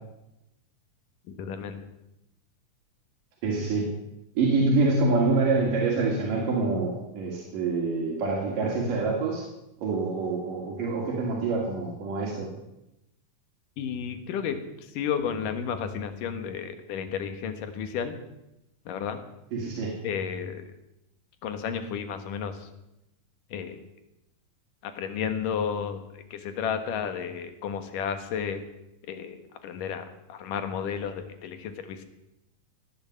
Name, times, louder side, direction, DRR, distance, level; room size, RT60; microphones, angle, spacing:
voice 1, 1.4-1.9 13.8-14.6 14.9-18.2 18.9-19.2 20.0-20.7 21.4-22.7 23.5-23.8 24.8-28.6 29.1-32.0, left 7 dB, 85° left, 8 dB, 3.1 m, -32 dB
voice 2, 3.4-3.9 4.4-9.4 9.8-12.5 19.5-20.0, right 3 dB, 90° right, -2 dB, 4.1 m, -26 dB
18.0 x 10.0 x 7.5 m, 0.90 s
omnidirectional pair, 3.7 m